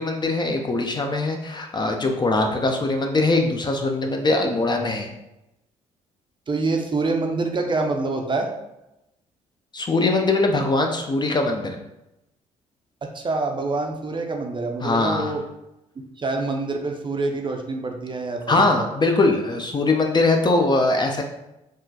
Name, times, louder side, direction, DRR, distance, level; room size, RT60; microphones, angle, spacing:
voice 1, 0.0-5.1 9.7-11.8 14.8-15.3 18.5-21.2, left 2 dB, 25° left, 3 dB, 0.5 m, -21 dB
voice 2, 6.5-8.5 13.0-15.4 16.2-18.9, right 3 dB, 30° right, 3 dB, 0.6 m, -26 dB
3.6 x 2.4 x 2.7 m, 0.90 s
hypercardioid pair, 50°, 17 cm